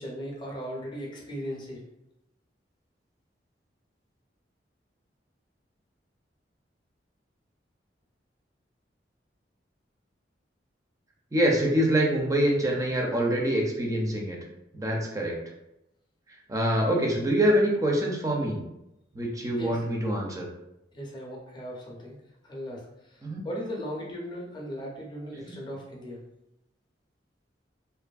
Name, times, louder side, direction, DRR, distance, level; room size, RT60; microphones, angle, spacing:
voice 1, 0.0-1.8 19.6-19.8 20.9-22.1 22.4-26.2, equal, 25° left, -2 dB, 0.6 m, -37 dB
voice 2, 11.3-14.4 14.7-15.4 16.5-18.6 19.1-20.5 23.2-23.4 25.3-25.5, right 1 dB, 20° right, -1 dB, 0.5 m, -25 dB
2.6 x 2.5 x 2.3 m, 0.86 s
head